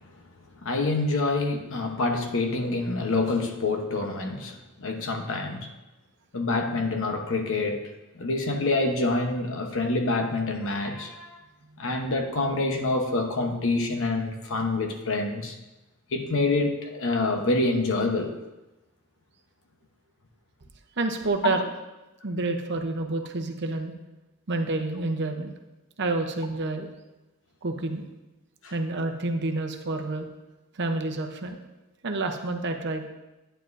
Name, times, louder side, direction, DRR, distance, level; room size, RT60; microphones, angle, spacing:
voice 1, 0.6-5.7 6.3-7.8 8.1-11.4 11.8-15.5 16.1-18.4 21.4-21.6 28.6-28.7, left 2 dB, 60° left, 4 dB, 1.0 m, -26 dB
voice 2, 21.0-21.7 22.2-23.9 24.5-25.5 26.0-26.9 27.6-28.0 28.7-30.3 30.7-31.6 32.0-33.1, right 2 dB, 50° right, 4 dB, 0.8 m, -28 dB
10.0 x 9.6 x 2.6 m, 1.0 s
head